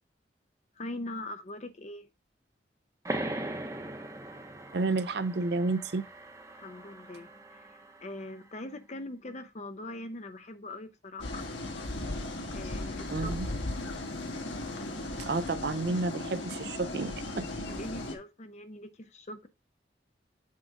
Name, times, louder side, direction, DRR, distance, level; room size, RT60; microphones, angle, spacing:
voice 1, 0.7-2.1 6.6-11.5 12.5-13.4 17.7-19.5, left 1 dB, 40° left, 0.7 m, -42 dB
sound 1, 3.0-8.3, right 1 dB, 15° right, 0.9 m, -40 dB
voice 2, 4.7-6.1 13.1-13.5 15.2-17.5, right 3 dB, 60° right, 0.5 m, -31 dB
sound 2, 11.2-18.1, left 2 dB, 80° left, 1.4 m, -36 dB
7.4 x 3.8 x 4.6 m
head